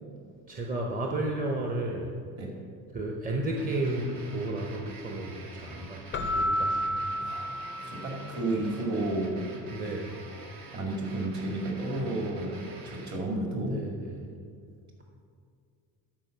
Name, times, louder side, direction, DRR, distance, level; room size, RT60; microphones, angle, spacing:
voice 1, 0.5-2.1 2.9-6.9 9.7-10.2 13.5-14.2, right 2 dB, 20° right, 0 dB, 0.8 m, -33 dB
sound 1, 3.6-13.2, right 2 dB, 65° right, 1.6 m, -45 dB
Keyboard (musical), 6.1-8.5, equal, 30° left, 0.4 m, -31 dB
voice 2, 7.2-7.5 7.8-9.5 10.7-13.7, right 2 dB, 40° right, 0 dB, 2.5 m, -32 dB
12.0 x 4.8 x 6.6 m, 2.3 s
cardioid pair, 125°, 41 cm